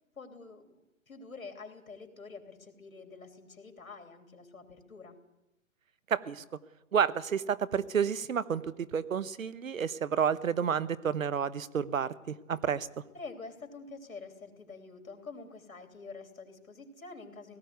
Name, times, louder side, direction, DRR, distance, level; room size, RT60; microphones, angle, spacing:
voice 1, 0.2-5.2 13.1-17.6, left 4 dB, 80° left, 5 dB, 3.4 m, -47 dB
voice 2, 6.1-6.4 6.9-12.9, right 7 dB, 75° right, 16 dB, 1.1 m, -30 dB
18.0 x 15.5 x 9.4 m, 0.92 s
hypercardioid pair, 140°, 41 cm